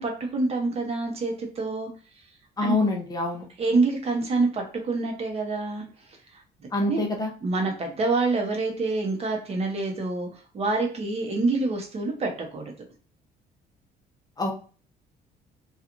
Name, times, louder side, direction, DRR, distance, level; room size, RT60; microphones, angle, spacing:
voice 1, 0.0-1.9 2.6-2.7 3.6-5.8 6.3-6.4 6.9-7.0 7.4-12.7, right 3 dB, 35° right, 2 dB, 0.8 m, -26 dB
voice 2, 2.6-3.5 6.7-7.3 14.4-14.5, left 2 dB, 20° left, 1 dB, 0.6 m, -25 dB
2.9 x 2.4 x 2.5 m, 0.37 s
cardioid pair, 110°, 17 cm